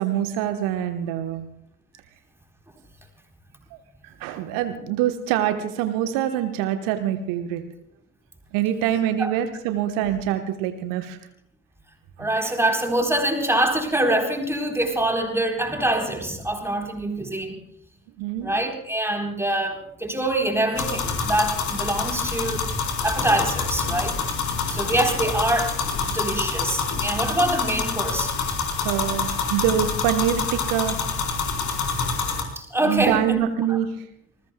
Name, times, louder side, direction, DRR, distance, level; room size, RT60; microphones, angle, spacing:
voice 1, 0.0-1.5 3.7-3.8 4.2-7.6 8.5-11.2 12.2-12.5 18.2-18.6 28.8-31.0 32.8-33.9, right 11 dB, 60° right, 8 dB, 1.3 m, -25 dB
voice 2, 12.2-17.6 18.4-22.6 23.0-24.2 24.7-25.8 26.1-28.3 32.6-33.4 33.7-33.8, right 1 dB, 5° right, 2 dB, 4.0 m, -24 dB
sound 1, 20.7-32.4, left 5 dB, 50° left, 4.3 m, -26 dB
27.5 x 20.5 x 2.3 m, 0.77 s
figure-of-eight pair, 50°, 39 cm